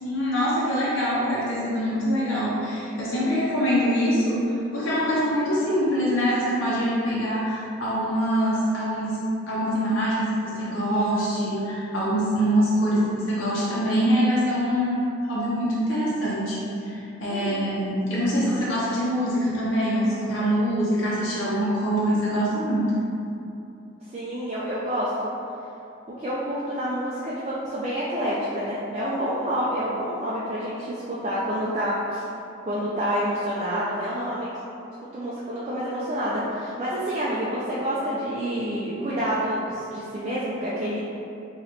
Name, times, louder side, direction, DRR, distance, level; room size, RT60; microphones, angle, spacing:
voice 1, 0.0-4.4 4.7-9.2 9.5-22.9, equal, 75° left, -8 dB, 0.9 m, -24 dB
voice 2, 17.3-17.7 24.1-25.3 26.1-32.2 32.6-34.5 35.0-41.0, equal, 30° right, -9 dB, 0.4 m, -28 dB
3.2 x 3.0 x 3.9 m, 2.7 s
head